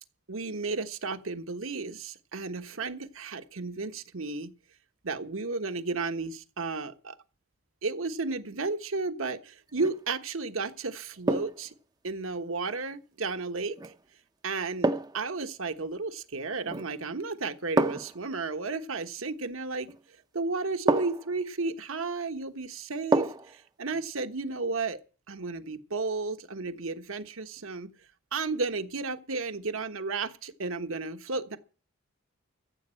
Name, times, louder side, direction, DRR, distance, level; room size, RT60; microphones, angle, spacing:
voice 1, 0.3-4.5 5.0-7.2 7.8-11.7 12.0-13.9 14.4-19.9 20.3-25.0 25.3-27.9 28.3-31.6, right 3 dB, 70° right, 1.3 m, -33 dB
sound 1, 9.7-10.0 11.3-11.7 13.8-14.0 14.8-15.3 16.6-17.0 17.8-18.2 19.9-20.0 20.9-21.3 23.1-23.6 23.9-24.0, right 2 dB, 20° right, 0.6 m, -28 dB
14.5 x 8.0 x 7.6 m
head